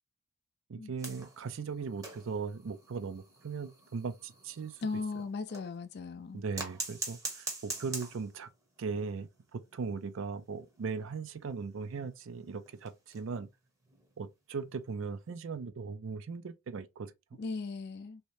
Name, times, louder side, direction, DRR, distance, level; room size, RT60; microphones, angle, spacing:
voice 1, 0.7-4.9 6.3-8.5 8.8-13.5 14.2-17.4, right 5 dB, 55° right, 0.4 m, -39 dB
sound 1, 1.0-5.8 6.5-8.5 8.8-8.9 9.2-9.3 9.6-9.7 10.3-13.4 13.9-14.1 15.3-15.4, right 2 dB, 15° right, 0.8 m, -44 dB
voice 2, 4.8-6.4 17.4-18.2, left 4 dB, 45° left, 0.4 m, -37 dB
3.1 x 2.8 x 3.1 m
head